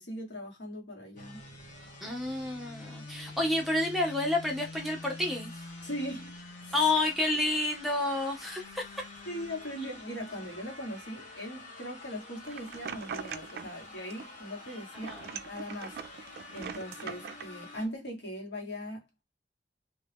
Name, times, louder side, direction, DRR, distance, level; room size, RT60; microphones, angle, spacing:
voice 1, 0.0-1.4 5.8-6.9 9.3-15.2 15.5-19.2, equal, 75° left, 1.6 m, -40 dB
sound 1, 1.2-17.9, left 2 dB, 45° left, 1.2 m, -47 dB
voice 2, 2.0-5.5 6.7-8.8 15.1-15.3, left 2 dB, ahead, 0.8 m, -29 dB
sound 2, 12.4-13.8 14.1-14.7 14.9-17.5, right 7 dB, 60° right, 0.4 m, -41 dB
2.9 x 2.9 x 3.3 m
head